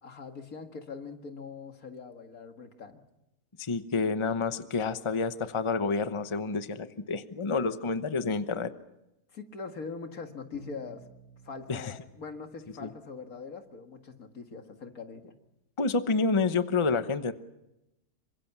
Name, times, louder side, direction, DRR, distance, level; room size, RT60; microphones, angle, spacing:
voice 1, 0.0-3.0 9.3-11.1 11.4-15.4, left 5 dB, 75° left, 5 dB, 2.4 m, -42 dB
voice 2, 3.6-8.7 11.7-11.9 12.8-12.9 15.8-17.3, left 4 dB, 25° left, 10 dB, 0.9 m, -29 dB
Bowed string instrument, 10.5-13.3, right 5 dB, 55° right, 2.9 m, -54 dB
27.0 x 24.5 x 6.1 m, 0.89 s
omnidirectional pair, 1.5 m